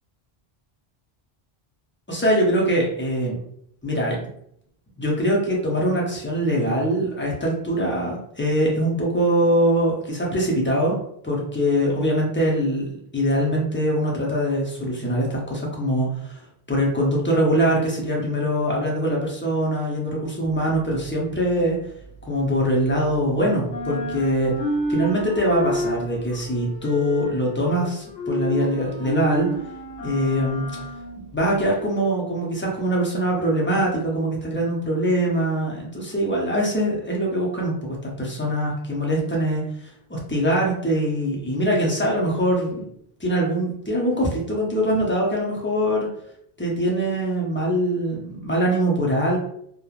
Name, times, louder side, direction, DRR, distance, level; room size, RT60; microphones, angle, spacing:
voice 1, 2.1-3.4 3.8-4.3 5.0-16.4 16.7-21.8 22.2-24.6 24.9-29.5 30.0-30.8 31.3-42.9 43.2-46.1 46.6-49.4, equal, 15° left, -3 dB, 0.5 m, -23 dB
sound 1, 20.5-23.3 23.6-31.7, equal, 80° left, 0.9 m, -31 dB
3.0 x 2.2 x 2.4 m, 0.72 s
omnidirectional pair, 1.1 m